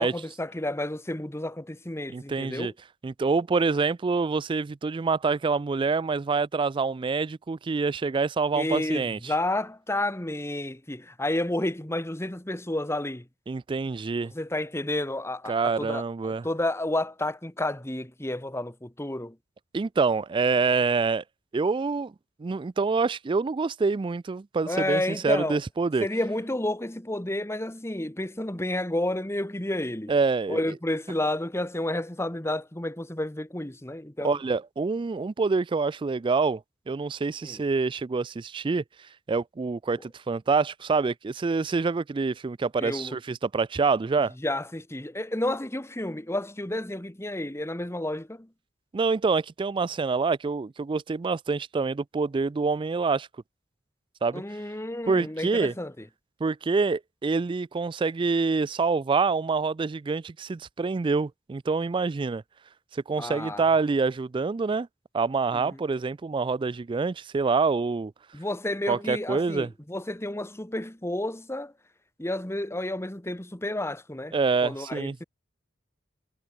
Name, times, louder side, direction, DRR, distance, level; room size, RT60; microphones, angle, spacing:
voice 1, 0.0-2.7 8.5-13.3 14.3-16.0 16.4-19.4 24.7-25.6 26.0-30.1 30.5-34.4 37.4-37.6 42.8-43.1 44.4-48.5 54.3-55.9 63.2-63.6 65.5-65.8 68.3-71.7 72.2-74.4 74.6-75.2, left 1 dB, 15° left, 1.3 m, -31 dB
voice 2, 2.1-2.7 3.0-9.2 13.5-14.3 15.5-16.5 19.7-21.2 21.5-22.1 22.4-26.1 30.1-30.6 34.2-36.6 36.9-38.8 39.3-44.3 48.9-53.3 54.2-54.4 55.1-55.7 56.4-62.4 62.9-64.9 65.1-68.1 68.9-69.7 74.3-75.2, right 4 dB, 25° right, 0.3 m, -26 dB
head